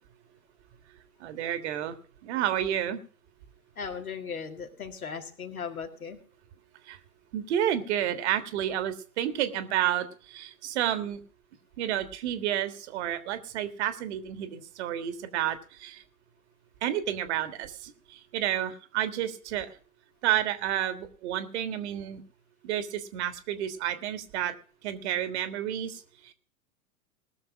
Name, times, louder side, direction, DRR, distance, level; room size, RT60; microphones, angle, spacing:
voice 1, 1.2-2.0 2.2-3.0 6.9-7.0 7.3-11.2 11.8-16.0 16.8-19.7 20.2-22.2 22.6-24.5 24.8-26.3, right 11 dB, 50° right, 10 dB, 1.6 m, -30 dB
voice 2, 3.8-6.2, left 6 dB, 75° left, 4 dB, 2.2 m, -37 dB
19.5 x 6.6 x 6.1 m, 0.42 s
figure-of-eight pair, 95°, 43 cm